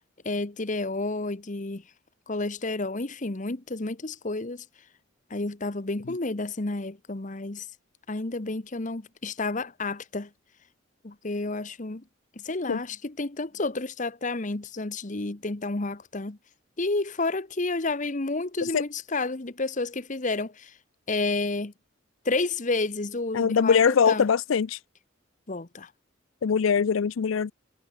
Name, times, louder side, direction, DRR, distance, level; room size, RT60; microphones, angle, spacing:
voice 1, 0.2-1.8 2.3-4.6 5.3-7.7 8.1-10.3 11.0-12.0 12.4-16.4 16.8-20.7 21.1-21.7 22.2-24.3 25.5-25.9, left 3 dB, 40° left, 1.1 m, -30 dB
voice 2, 23.3-24.8 26.4-27.5, left 6 dB, 85° left, 0.4 m, -22 dB
head